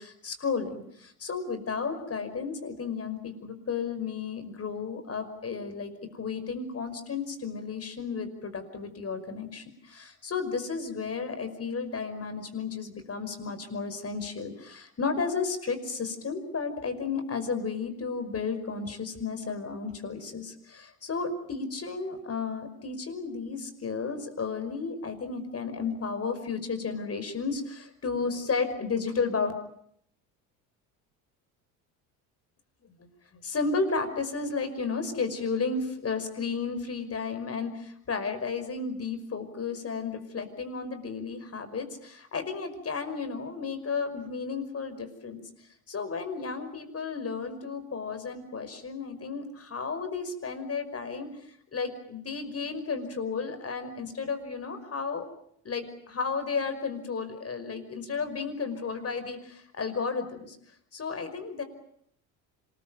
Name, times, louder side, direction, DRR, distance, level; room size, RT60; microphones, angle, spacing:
voice 1, 0.0-29.5 33.0-45.4 45.9-55.2 55.6-60.6 60.9-61.6, left 5 dB, 35° left, 9 dB, 5.4 m, -33 dB
26.5 x 21.0 x 9.1 m, 0.71 s
hypercardioid pair, 75°, 42 cm